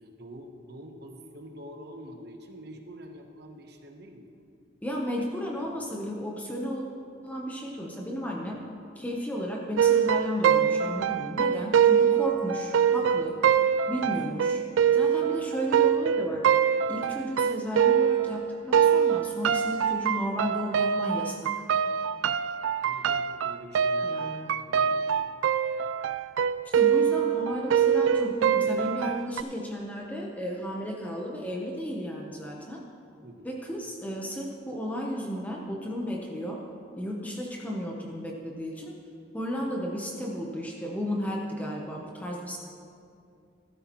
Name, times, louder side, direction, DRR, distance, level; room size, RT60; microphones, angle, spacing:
voice 1, 0.0-4.3 14.0-14.3 22.8-24.1 24.4-25.3 33.2-33.5, equal, 55° right, 4 dB, 1.1 m, -46 dB
voice 2, 4.8-6.8 7.2-8.6 9.0-13.4 13.9-14.6 14.9-16.4 16.9-21.5 24.0-24.5 26.7-32.8 33.4-36.6 37.0-38.9 39.3-42.6, equal, 10° left, -2 dB, 0.9 m, -33 dB
sound 1, 9.8-18.4 18.7-29.4, right 8 dB, 80° right, 0.3 m, -24 dB
14.5 x 12.0 x 3.0 m, 2.5 s
head